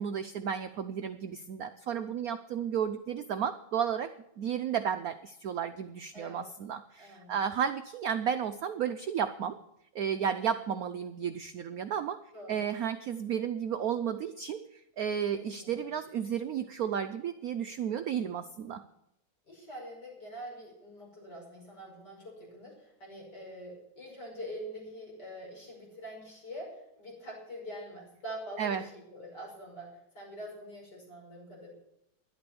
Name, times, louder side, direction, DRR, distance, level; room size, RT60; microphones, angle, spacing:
voice 1, 0.0-4.1 4.4-9.5 9.9-12.2 12.5-14.6 15.0-18.8 28.6-28.8, right 8 dB, 80° right, 9 dB, 0.8 m, -33 dB
voice 2, 6.1-6.5 7.0-7.3 12.3-12.7 15.4-15.9 19.5-29.9 30.1-31.7, equal, 50° left, -2 dB, 6.2 m, -45 dB
12.0 x 11.0 x 6.9 m, 0.82 s
omnidirectional pair, 2.3 m